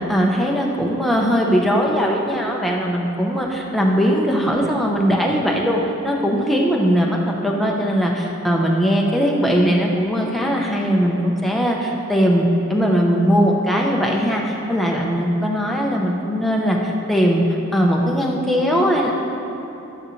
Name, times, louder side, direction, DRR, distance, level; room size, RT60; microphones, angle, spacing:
voice 1, 0.1-17.4 17.7-19.1, equal, ahead, -2 dB, 0.9 m, -19 dB
12.0 x 9.4 x 3.3 m, 3.0 s
head